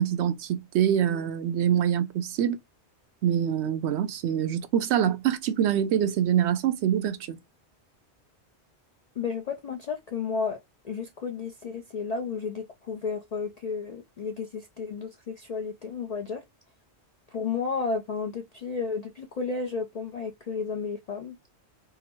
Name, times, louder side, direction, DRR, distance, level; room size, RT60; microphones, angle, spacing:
voice 1, 0.0-2.6 3.2-7.4, right 9 dB, 80° right, 0.9 m, -25 dB
voice 2, 9.2-10.6 10.8-16.4 17.3-21.4, left 5 dB, 50° left, 0.5 m, -32 dB
3.7 x 2.0 x 4.3 m
omnidirectional pair, 1.1 m